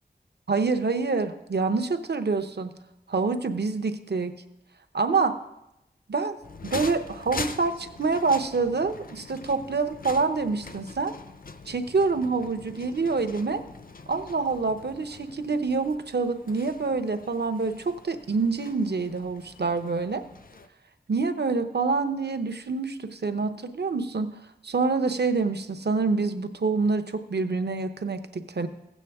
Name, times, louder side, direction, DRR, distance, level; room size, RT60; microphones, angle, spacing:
voice 1, 0.5-2.8 3.1-4.4 4.9-5.3 6.1-6.4 6.6-11.1 11.7-13.6 14.1-20.2 21.1-24.3 24.6-28.7, right 4 dB, 70° right, 9 dB, 0.8 m, -26 dB
sound 1, 6.4-20.7, left 4 dB, 55° left, 0.6 m, -43 dB
16.0 x 8.2 x 3.5 m, 0.89 s
wide cardioid pair, 65°, 17 cm